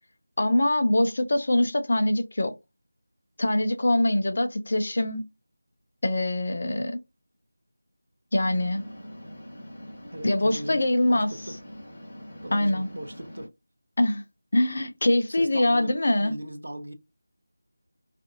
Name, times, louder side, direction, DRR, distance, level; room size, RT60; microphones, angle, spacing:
voice 1, 0.4-2.5 3.4-5.2 6.0-7.0 8.3-8.8 10.2-11.3 12.5-12.9 14.0-14.2 14.5-16.3, left 1 dB, 50° left, 0.5 m, -23 dB
sound 1, 8.4-13.5, equal, 20° left, 1.4 m, -43 dB
voice 2, 10.1-10.8 11.1-11.6 12.4-13.5 15.3-16.9, right 1 dB, 65° right, 0.6 m, -38 dB
2.5 x 2.5 x 2.6 m
figure-of-eight pair, 165°, 0 cm